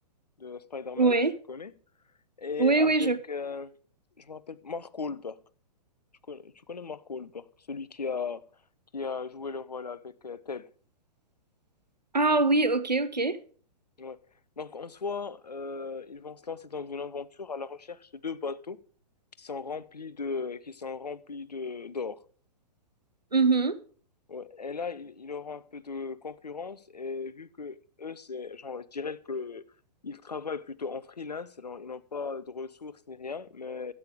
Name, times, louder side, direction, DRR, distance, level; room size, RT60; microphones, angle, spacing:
voice 1, 0.4-1.1 1.5-1.7 2.4-3.7 4.2-5.4 6.3-8.5 8.9-10.7 14.0-14.2 14.6-18.8 19.4-22.2 24.3-29.6 30.0-33.9, left 5 dB, 75° left, 0.7 m, -37 dB
voice 2, 1.0-1.3 2.6-3.2 12.1-13.4 23.3-23.8, right 3 dB, 85° right, 1.0 m, -23 dB
12.5 x 8.6 x 4.9 m
figure-of-eight pair, 115°, 21 cm